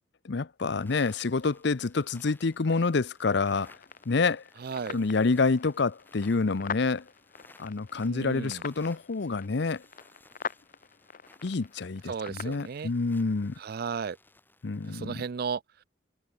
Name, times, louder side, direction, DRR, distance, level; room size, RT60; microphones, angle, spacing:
voice 1, 0.2-3.8 4.1-4.4 4.9-7.1 7.6-9.8 11.4-13.6 14.6-15.2, left 4 dB, 60° left, 0.7 m, -27 dB
sound 1, 0.7-15.0, left 2 dB, 10° left, 3.9 m, -60 dB
sound 2, 3.5-12.6, left 6 dB, 45° left, 1.1 m, -43 dB
voice 2, 4.6-5.0 8.1-8.6 12.1-12.9 13.6-14.2 14.8-15.6, right 5 dB, 55° right, 0.4 m, -34 dB
head